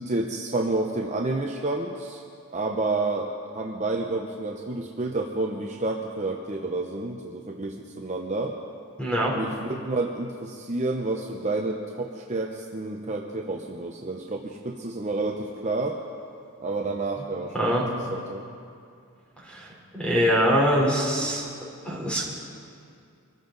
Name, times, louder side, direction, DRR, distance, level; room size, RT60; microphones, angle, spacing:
voice 1, 0.0-2.2 2.5-8.6 9.3-16.0 16.6-18.4, right 2 dB, 30° right, 1 dB, 0.8 m, -30 dB
voice 2, 9.0-9.3 17.5-17.8 19.5-19.7 19.9-21.4 21.8-22.2, equal, 5° left, -4 dB, 3.6 m, -23 dB
24.5 x 14.5 x 4.0 m, 2.4 s
head